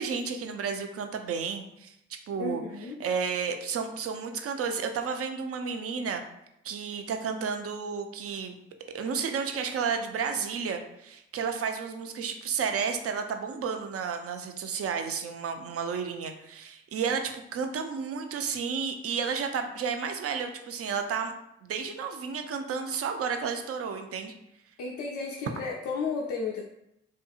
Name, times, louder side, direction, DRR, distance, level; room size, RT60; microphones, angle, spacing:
voice 1, 0.0-1.9 2.3-2.6 3.0-6.2 6.6-8.5 8.9-21.3 21.6-24.3, right 6 dB, 50° right, 6 dB, 0.5 m, -32 dB
voice 2, 2.4-2.9 24.8-26.6, left 4 dB, 70° left, -1 dB, 0.5 m, -33 dB
2.7 x 2.5 x 2.3 m, 0.81 s
hypercardioid pair, 40°, 30 cm